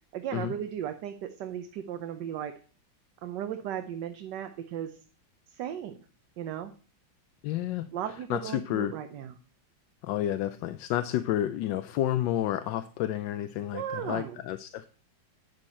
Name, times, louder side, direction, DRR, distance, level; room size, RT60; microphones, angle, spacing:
voice 1, 0.1-2.5 3.2-5.0 5.5-6.0 6.4-6.7 7.9-9.3 13.7-14.4, right 10 dB, 70° right, 7 dB, 1.3 m, -36 dB
voice 2, 7.4-7.9 8.3-8.9 10.0-14.9, left 12 dB, 75° left, 11 dB, 1.2 m, -30 dB
9.8 x 6.5 x 4.3 m, 0.40 s
omnidirectional pair, 2.0 m